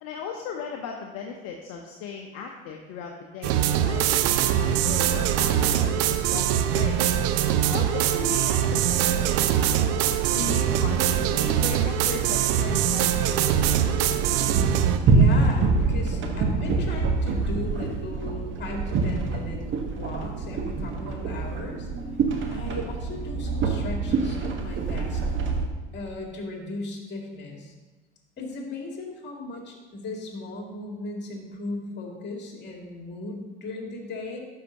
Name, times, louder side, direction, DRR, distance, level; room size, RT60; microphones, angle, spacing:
voice 1, 0.0-4.1 4.5-6.0 6.3-7.0 7.7-9.5 10.3-13.5, left 6 dB, 60° left, 2 dB, 0.8 m, -37 dB
sound 1, 3.4-15.0, right 10 dB, 60° right, 0.6 m, -23 dB
sound 2, 13.5-25.7, right 4 dB, 40° right, 1.3 m, -25 dB
voice 2, 15.1-19.6 19.9-21.9 22.5-25.2 25.9-27.7 28.4-34.4, left 2 dB, 35° left, 0 dB, 2.3 m, -36 dB
12.0 x 5.7 x 2.8 m, 1.2 s
hypercardioid pair, 70°, 29 cm